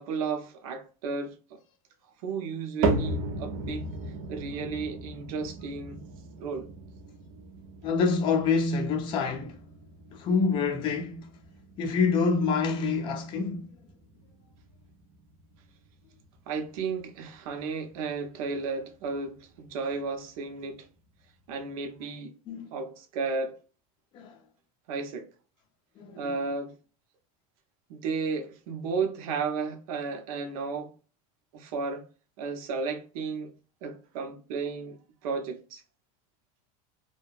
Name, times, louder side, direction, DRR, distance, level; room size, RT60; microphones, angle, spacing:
voice 1, 0.0-1.6 2.2-3.8 4.3-6.0 6.4-6.7 16.5-20.9 21.5-22.3 22.7-23.6 24.9-25.3 26.2-26.8 27.9-30.9 31.5-32.0 32.4-33.5 33.8-35.0 35.2-35.8, right 4 dB, 85° right, 0.8 m, -33 dB
sound 1, 2.8-19.1 19.5-20.0 20.6-20.7 21.5-21.6, right 3 dB, 55° right, 0.5 m, -37 dB
voice 2, 7.8-9.6 10.1-11.3 11.8-13.7 22.5-22.7 24.1-24.4 26.0-26.3, left 5 dB, 25° left, 0.4 m, -27 dB
2.7 x 2.2 x 2.3 m
cardioid pair, 180°, 18 cm